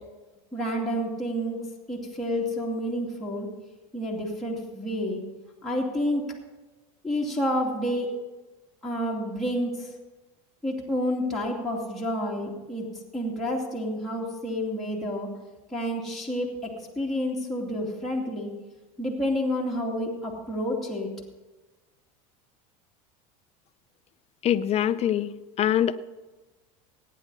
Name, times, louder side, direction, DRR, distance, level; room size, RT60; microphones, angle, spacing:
voice 1, 0.5-1.6 1.9-3.5 3.9-5.2 5.6-6.3 7.0-8.1 8.8-9.9 10.6-12.9 13.1-15.3 15.7-16.6 17.0-18.5 19.0-21.1, equal, ahead, -5 dB, 2.6 m, -29 dB
voice 2, 24.4-25.3 25.6-26.0, left 10 dB, 35° left, 12 dB, 0.7 m, -23 dB
17.5 x 9.6 x 4.1 m, 1.2 s
supercardioid pair, 105°, 18 cm